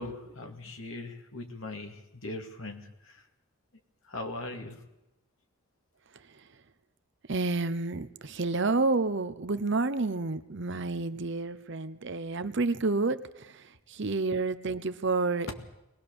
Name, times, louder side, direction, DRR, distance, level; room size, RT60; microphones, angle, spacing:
voice 1, 0.0-3.3 4.0-4.8 15.5-15.6, left 2 dB, 65° left, 4 dB, 2.3 m, -40 dB
voice 2, 7.3-15.5, right 3 dB, 50° right, 12 dB, 0.8 m, -30 dB
22.0 x 19.0 x 7.0 m, 0.94 s
head